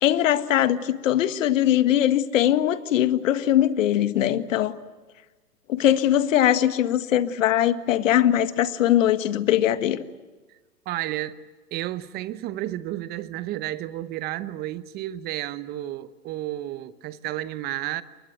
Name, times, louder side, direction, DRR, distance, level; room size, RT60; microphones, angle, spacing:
voice 1, 0.0-4.8 5.7-10.0, left 11 dB, 55° left, 1.7 m, -21 dB
voice 2, 10.9-11.4 11.7-18.0, right 14 dB, 20° right, 0.9 m, -31 dB
29.5 x 23.5 x 7.9 m
hypercardioid pair, 120°, 47 cm